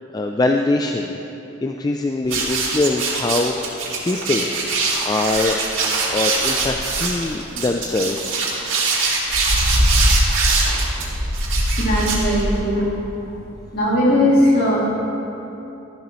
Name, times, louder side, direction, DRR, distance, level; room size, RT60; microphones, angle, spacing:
voice 1, 0.1-1.2 1.6-4.5 5.0-5.6 6.1-8.4, left 2 dB, 20° left, 3 dB, 0.3 m, -22 dB
sound 1, 2.3-12.7, right 2 dB, 80° right, 2.2 m, -21 dB
voice 2, 11.7-12.9 13.7-14.9, left 1 dB, 50° left, -6 dB, 2.7 m, -18 dB
13.5 x 10.5 x 3.1 m, 3.0 s
head